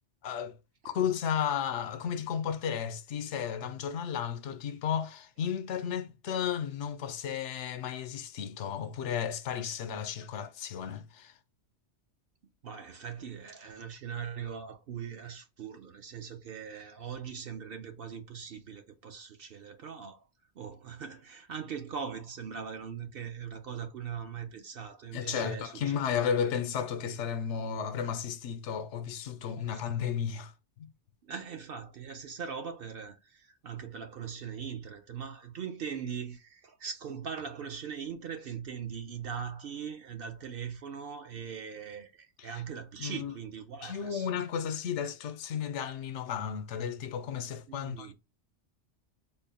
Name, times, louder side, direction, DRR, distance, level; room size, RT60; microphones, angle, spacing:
voice 1, 0.2-0.6 0.8-11.3 25.1-30.5 30.8-30.9 42.4-42.6 43.0-43.3 43.8-48.1, left 8 dB, 85° left, 0.9 m, -33 dB
voice 2, 12.6-20.2 20.6-26.1 27.6-27.7 29.7-29.8 31.2-44.3 47.7-48.1, right 7 dB, 60° right, 0.8 m, -40 dB
3.8 x 2.1 x 4.0 m
omnidirectional pair, 1.2 m